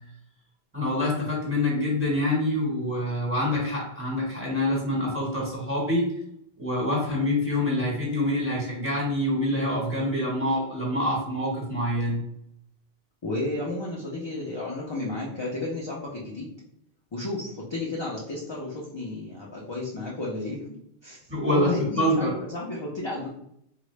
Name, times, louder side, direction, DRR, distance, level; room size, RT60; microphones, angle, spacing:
voice 1, 0.7-6.1 6.6-12.2 21.3-22.4, left 1 dB, 15° right, -5 dB, 1.1 m, -26 dB
voice 2, 13.2-16.5 17.1-20.6 21.0-21.2 21.5-23.3, left 2 dB, 35° left, -4 dB, 0.4 m, -32 dB
3.7 x 2.1 x 3.1 m, 0.74 s
omnidirectional pair, 1.0 m